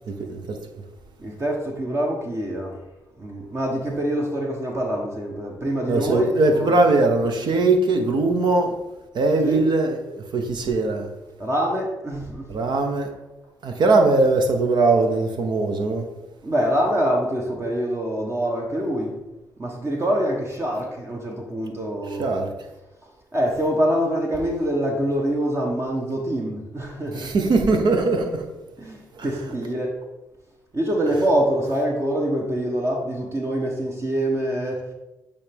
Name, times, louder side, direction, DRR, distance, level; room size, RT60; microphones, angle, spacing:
voice 1, 0.1-0.6 5.9-8.7 9.1-11.1 12.5-13.1 13.6-16.1 22.2-22.5 27.1-28.5 29.1-29.3, right 3 dB, 65° right, 0.9 m, -20 dB
voice 2, 1.2-2.8 3.2-6.8 9.4-9.6 11.4-12.5 16.4-19.2 19.6-22.4 23.3-27.3 28.8-30.0 30.7-34.9, equal, 35° right, 1.1 m, -25 dB
8.1 x 3.4 x 3.5 m
supercardioid pair, 55°, 8 cm